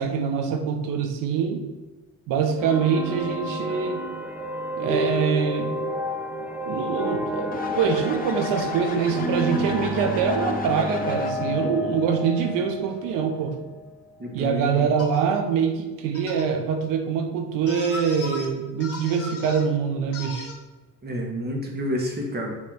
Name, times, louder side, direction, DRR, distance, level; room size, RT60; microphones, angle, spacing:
voice 1, 0.0-1.7 2.3-4.0 4.8-5.8 6.7-13.6 14.3-20.5, right 6 dB, 90° right, 6 dB, 0.9 m, -24 dB
sound 1, 2.6-13.8, left 1 dB, 5° right, 0.5 m, -30 dB
sound 2, 7.5-11.7, left 3 dB, 25° left, 0.7 m, -35 dB
voice 2, 14.2-14.9 21.0-22.5, equal, 30° right, 0 dB, 1.6 m, -29 dB
sound 3, 15.0-15.2 16.1-16.5 17.7-18.5 18.8-19.7 20.1-20.5, left 3 dB, 45° left, 1.2 m, -36 dB
6.2 x 3.3 x 5.7 m, 1.2 s
cardioid pair, 115°, 32 cm